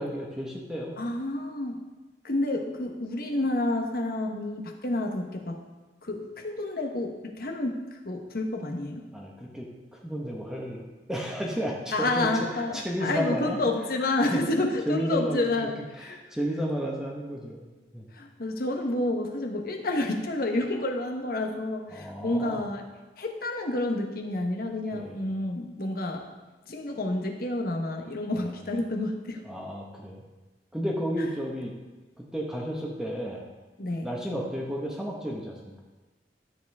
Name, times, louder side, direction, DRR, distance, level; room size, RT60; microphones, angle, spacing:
voice 1, 0.0-0.9 9.1-10.8 11.1-12.3 12.5-13.6 14.3-14.4 14.9-15.5 16.0-17.6 17.9-18.1 21.9-22.6 24.9-25.2 28.3-28.5 29.4-30.2 30.7-31.7 32.2-33.4 34.0-35.8, equal, 5° right, -2 dB, 1.2 m, -32 dB
voice 2, 1.0-1.8 2.2-5.6 6.0-9.1 11.9-16.2 18.1-22.9 23.2-26.3 26.7-29.4 33.8-34.1, left 2 dB, 55° left, 3 dB, 1.1 m, -29 dB
12.0 x 7.2 x 3.5 m, 1.2 s
head